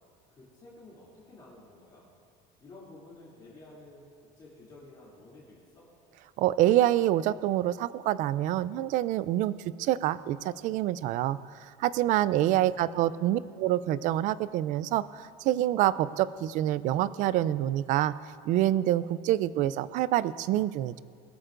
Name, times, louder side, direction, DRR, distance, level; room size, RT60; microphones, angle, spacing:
voice 1, 0.3-2.1 2.6-5.9 12.1-13.4, left 2 dB, 25° left, -7 dB, 2.8 m, -52 dB
voice 2, 6.4-9.5 9.8-18.1 18.4-21.0, right 13 dB, 50° right, 17 dB, 0.4 m, -26 dB
21.5 x 13.0 x 2.6 m, 2.1 s
cardioid pair, 160°, 17 cm